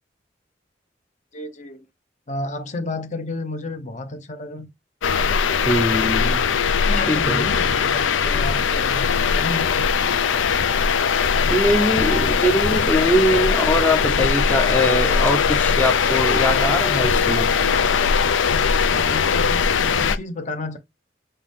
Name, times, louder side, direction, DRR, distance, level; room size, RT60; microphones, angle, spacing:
voice 1, 1.3-1.9 2.3-4.7 6.8-9.7 18.8-20.8, left 2 dB, 40° left, 0.8 m, -31 dB
sound 1, 5.0-20.2, left 6 dB, 85° left, 0.5 m, -20 dB
voice 2, 5.6-6.5 7.1-7.4 11.5-17.7, equal, 10° left, 0.6 m, -22 dB
5.6 x 2.7 x 3.5 m
head